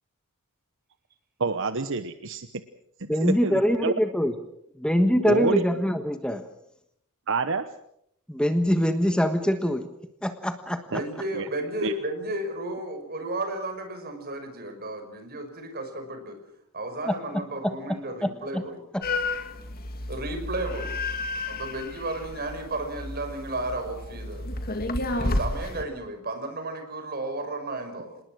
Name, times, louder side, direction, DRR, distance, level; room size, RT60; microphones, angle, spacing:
voice 1, 1.4-2.6 3.2-3.9 5.2-5.6 7.3-7.7 10.9-11.0 11.3-11.5 11.8-11.9, right 4 dB, 60° right, 11 dB, 1.0 m, -27 dB
voice 2, 3.1-4.3 4.8-6.4 8.3-9.8 10.2-11.0 17.1-17.2 18.2-18.6, equal, 5° left, 7 dB, 1.3 m, -24 dB
voice 3, 10.9-16.4 16.7-18.8 20.1-20.9 21.5-24.6 25.1-28.2, right 2 dB, 45° right, 6 dB, 5.6 m, -33 dB
sound 1, 19.0-25.8, left 2 dB, 45° left, 2.3 m, -31 dB
27.0 x 20.0 x 6.3 m, 0.74 s
head